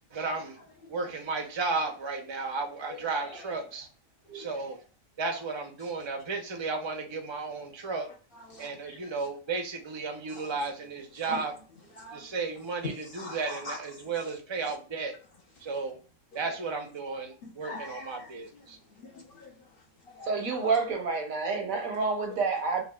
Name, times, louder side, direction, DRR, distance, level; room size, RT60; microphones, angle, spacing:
voice 1, 0.1-3.9 4.3-4.8 5.2-8.1 8.6-11.5 12.1-15.2 15.6-16.0 16.3-18.8, right 4 dB, 30° right, 0.5 m, -34 dB
voice 2, 0.8-1.1 2.9-3.5 4.2-4.5 5.3-5.4 5.8-5.9 8.3-9.3 10.3-10.7 11.3-11.5 11.9-12.4 12.9-14.3 14.7-14.8 15.6-15.7 16.3-16.6 17.4-20.8 21.7-22.0, left 2 dB, 50° left, 1.0 m, -46 dB
voice 3, 20.3-22.8, right 4 dB, 80° right, 1.4 m, -28 dB
6.1 x 2.3 x 2.3 m
omnidirectional pair, 1.4 m